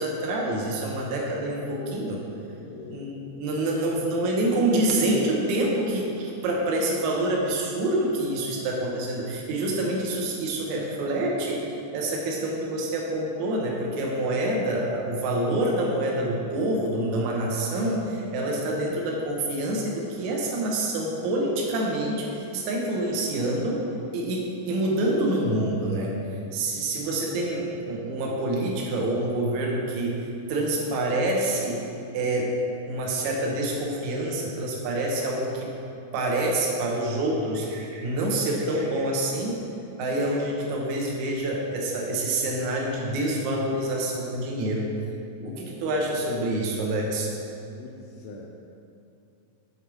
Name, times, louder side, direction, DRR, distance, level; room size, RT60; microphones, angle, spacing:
voice 1, 0.0-2.2 2.9-11.6 11.9-23.8 24.1-26.1 26.5-30.2 30.5-31.8 32.1-32.5 32.9-35.7 36.1-39.6 40.0-44.9 45.4-47.3, right 1 dB, 65° right, -2 dB, 2.0 m, -27 dB
voice 2, 2.6-4.3 4.7-4.8 8.4-8.7 47.8-48.5, left 4 dB, 85° left, -1 dB, 2.0 m, -40 dB
6.9 x 4.6 x 6.1 m, 2.6 s
omnidirectional pair, 4.3 m